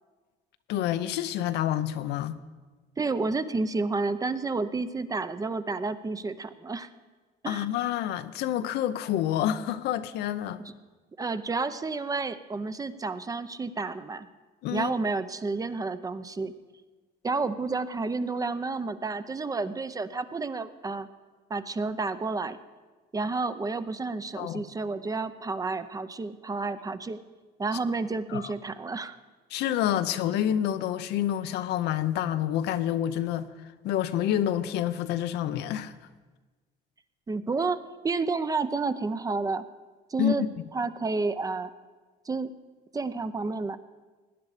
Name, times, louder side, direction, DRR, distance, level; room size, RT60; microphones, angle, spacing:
voice 1, 0.7-2.4 7.5-10.6 14.6-14.9 24.4-24.6 28.3-28.5 29.5-33.5 33.8-35.9 40.2-40.5, left 11 dB, 80° left, 0.7 m, -28 dB
voice 2, 3.0-6.9 7.4-7.7 11.2-14.3 14.7-16.5 17.2-21.1 21.5-22.6 23.1-27.2 27.6-29.2 37.3-37.8 38.0-39.6 40.1-40.4 40.7-41.7 42.3-42.5 42.9-43.8, right 3 dB, 20° right, 0.6 m, -30 dB
18.0 x 9.9 x 5.0 m
cardioid pair, 110°, 17 cm